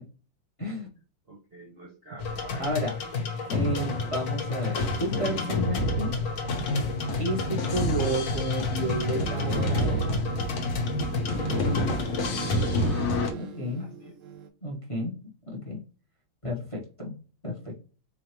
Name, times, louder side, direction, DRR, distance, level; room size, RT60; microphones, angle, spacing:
voice 1, 1.3-3.5 11.7-11.9 13.8-14.1, right 2 dB, 45° right, -1 dB, 0.8 m, -47 dB
sound 1, 2.2-13.3, left 2 dB, 50° left, 1.1 m, -29 dB
voice 2, 2.6-2.9 3.5-6.1 7.2-10.1 13.4-13.8 14.6-15.1 15.5-15.8 16.4-17.1 17.4-17.8, equal, 25° left, -2 dB, 0.8 m, -31 dB
sound 2, 6.4-13.3, equal, 85° left, 1.6 m, -32 dB
sound 3, 8.8-14.5, right 4 dB, 80° right, 0.7 m, -39 dB
4.3 x 2.8 x 3.0 m, 0.37 s
omnidirectional pair, 2.1 m